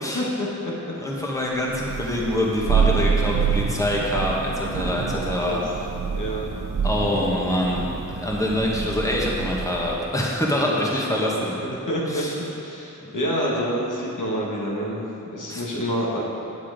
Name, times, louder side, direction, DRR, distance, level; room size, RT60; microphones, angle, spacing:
voice 1, 0.0-0.9 5.5-5.7 6.1-6.5 10.6-12.2 12.6-16.2, equal, 70° left, -5 dB, 1.8 m, -28 dB
voice 2, 1.0-5.6 6.8-11.5 12.1-12.3 15.5-15.6, left 1 dB, 10° left, -3 dB, 1.5 m, -25 dB
Thunder, 1.7-10.1, right 6 dB, 80° right, 0.7 m, -27 dB
9.3 x 7.2 x 5.1 m, 2.9 s
wide cardioid pair, 60°, 32 cm